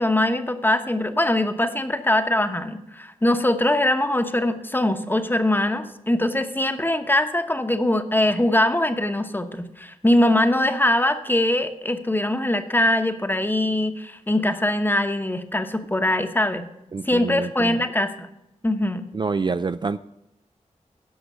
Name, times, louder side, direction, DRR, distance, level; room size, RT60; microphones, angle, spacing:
voice 1, 0.0-16.7 17.0-18.3 18.6-19.1, left 1 dB, 15° left, 1.0 m, -22 dB
voice 2, 16.9-17.8 19.1-20.0, right 4 dB, 35° right, 0.4 m, -27 dB
12.5 x 5.1 x 6.9 m
cardioid pair, 55°, 13 cm